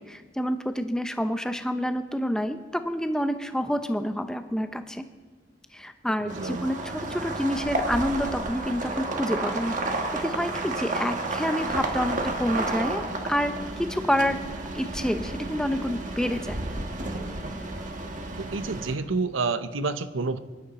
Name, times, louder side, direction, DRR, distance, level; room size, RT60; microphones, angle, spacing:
voice 1, 0.0-5.1 5.7-13.0 13.3-14.4 14.7-16.6, equal, 5° left, 8 dB, 0.7 m, -28 dB
voice 2, 6.2-6.7 18.4-20.4, right 3 dB, 90° right, 12 dB, 0.8 m, -29 dB
sound 1, 6.3-18.9, right 2 dB, 40° right, 1.4 m, -31 dB
22.5 x 11.5 x 4.1 m, 1.4 s
head